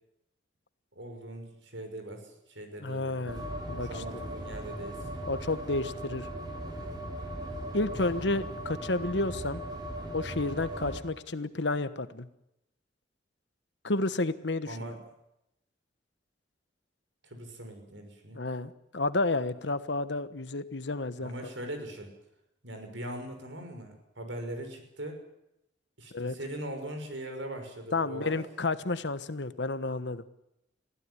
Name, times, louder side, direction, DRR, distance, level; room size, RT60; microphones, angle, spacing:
voice 1, 0.9-3.3 3.8-5.1 14.6-15.0 17.2-18.4 21.2-22.1 22.6-25.2 26.0-28.4, right 1 dB, 80° right, 6 dB, 6.0 m, -41 dB
voice 2, 2.8-3.9 5.3-6.3 7.7-9.6 10.1-12.3 13.8-14.7 18.3-21.5 26.1-26.4 27.9-30.2, left 2 dB, 70° left, 13 dB, 1.2 m, -31 dB
sound 1, 3.3-11.0, right 1 dB, 25° right, 4.7 m, -38 dB
22.0 x 16.0 x 9.8 m, 0.85 s
head